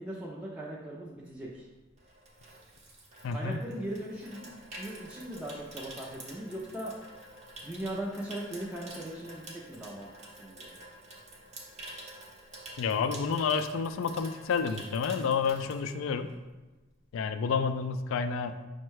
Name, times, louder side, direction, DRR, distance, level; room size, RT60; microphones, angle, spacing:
voice 1, 0.0-1.7 3.3-4.5 4.8-7.0 7.6-10.7, right 1 dB, 5° right, -4 dB, 0.4 m, -39 dB
Water tap faucet / Sink (filling or washing), 1.7-16.5 16.8-17.1, right 1 dB, 35° right, 0.7 m, -48 dB
voice 2, 3.2-3.6 12.8-16.3 17.1-18.6, left 5 dB, 75° left, 10 dB, 0.3 m, -30 dB
5.3 x 2.2 x 4.6 m, 1.2 s
head